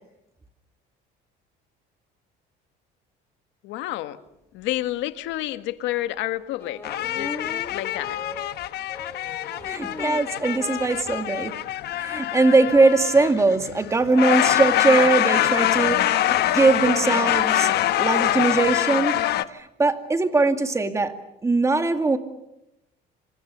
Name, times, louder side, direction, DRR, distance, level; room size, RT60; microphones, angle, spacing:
voice 1, 3.6-4.2 4.5-7.4 7.7-8.2, left 15 dB, 75° left, 1.7 m, -29 dB
sound 1, 4.8-4.9 5.3-5.4 6.6-10.9 11.3-11.4 11.6-11.7 11.9-12.2, left 2 dB, 10° left, 2.2 m, -39 dB
sound 2, 6.8-19.4, left 13 dB, 60° left, 1.1 m, -24 dB
voice 2, 9.6-11.6 11.9-19.1 19.5-21.1 21.4-22.2, right 3 dB, 15° right, 2.3 m, -21 dB
27.0 x 26.5 x 6.9 m
cardioid pair, 135°, 19 cm